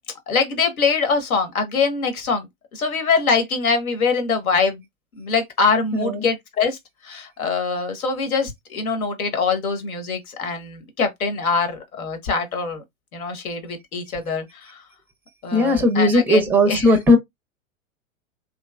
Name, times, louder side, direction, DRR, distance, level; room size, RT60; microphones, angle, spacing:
voice 1, 0.3-4.8 5.2-12.8 13.1-14.8 15.4-17.0, left 5 dB, 75° left, 1.3 m, -23 dB
voice 2, 5.9-6.2 15.5-17.2, left 1 dB, 5° right, 0.5 m, -17 dB
3.2 x 2.9 x 2.2 m
hypercardioid pair, 100°, 43 cm